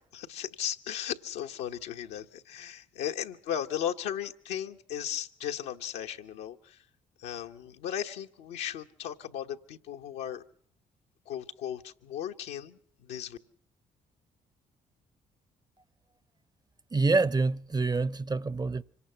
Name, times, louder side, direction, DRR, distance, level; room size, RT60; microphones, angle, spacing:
voice 1, 0.0-6.8 7.2-10.4 11.3-13.4, left 10 dB, 80° left, 1.1 m, -36 dB
voice 2, 16.9-18.8, right 3 dB, 25° right, 0.7 m, -26 dB
25.5 x 18.0 x 5.6 m
hypercardioid pair, 45°, 18 cm